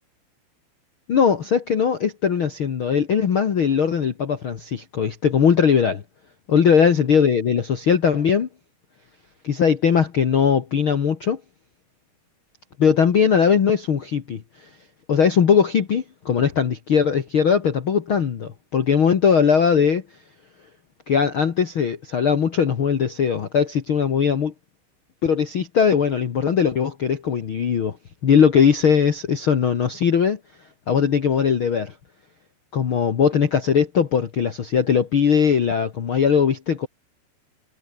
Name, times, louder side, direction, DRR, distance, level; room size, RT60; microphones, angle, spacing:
voice 1, 1.1-6.0 6.5-8.5 9.4-11.4 12.8-14.4 15.1-20.0 21.1-24.5 25.2-28.0 28.2-30.4 30.9-31.9 32.7-36.9, left 7 dB, 85° left, 1.1 m, -19 dB
omnidirectional pair, 5.0 m